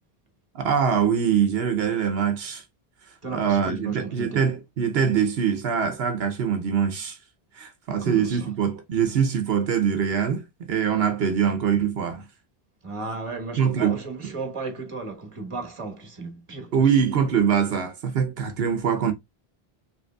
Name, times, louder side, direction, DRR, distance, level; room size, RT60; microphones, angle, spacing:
voice 1, 0.5-2.6 3.3-7.2 7.6-12.2 13.6-13.9 16.7-19.1, right 7 dB, 80° right, 0.9 m, -23 dB
voice 2, 3.2-4.5 8.0-8.5 12.8-16.8, right 3 dB, 30° right, 1.2 m, -34 dB
5.2 x 3.2 x 2.2 m
omnidirectional pair, 1.0 m